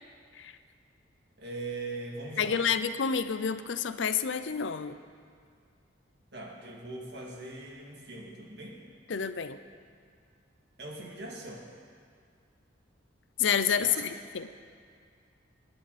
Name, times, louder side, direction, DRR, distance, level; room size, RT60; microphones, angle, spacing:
voice 1, 1.4-2.7 6.3-8.8 10.8-11.7 13.8-14.0, right 2 dB, 60° right, -2 dB, 2.5 m, -40 dB
voice 2, 2.4-5.0 9.1-9.6 13.4-14.5, left 7 dB, 70° left, 11 dB, 0.6 m, -29 dB
23.5 x 10.0 x 4.2 m, 2.1 s
head